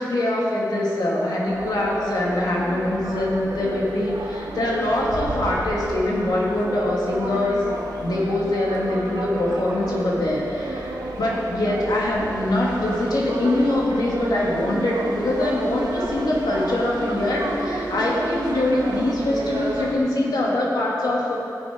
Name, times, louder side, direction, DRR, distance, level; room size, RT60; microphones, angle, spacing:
voice 1, 0.0-7.7 8.0-21.4, left 1 dB, 80° left, -4 dB, 2.4 m, -23 dB
sound 1, 1.5-20.0, right 2 dB, 90° right, 1.3 m, -31 dB
17.5 x 6.6 x 5.2 m, 2.8 s
wide cardioid pair, 100°, 7 cm